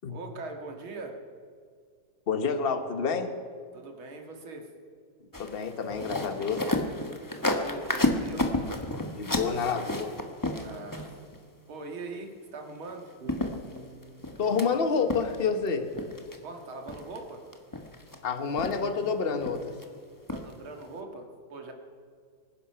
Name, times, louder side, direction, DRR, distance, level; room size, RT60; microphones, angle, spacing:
voice 1, 0.1-1.1 3.7-4.7 7.3-8.5 10.6-11.1 11.7-13.0 16.4-17.4 20.3-21.7, right 3 dB, 70° right, 3 dB, 2.7 m, -41 dB
voice 2, 2.3-3.3 5.4-6.6 9.2-10.1 14.4-15.9 18.2-19.7, left 5 dB, 35° left, 8 dB, 1.0 m, -28 dB
sound 1, 5.3-11.4 12.9-13.0 13.3-14.7 15.1-15.7 15.9-16.4 16.9-17.2 17.5-18.2 18.6-19.1 19.4-19.9 20.3-20.5 20.8-20.9, left 2 dB, 15° left, 0.7 m, -31 dB
sound 2, 13.2-16.6, right 3 dB, 20° right, 3.6 m, -49 dB
24.0 x 10.5 x 5.7 m, 2.1 s
omnidirectional pair, 2.4 m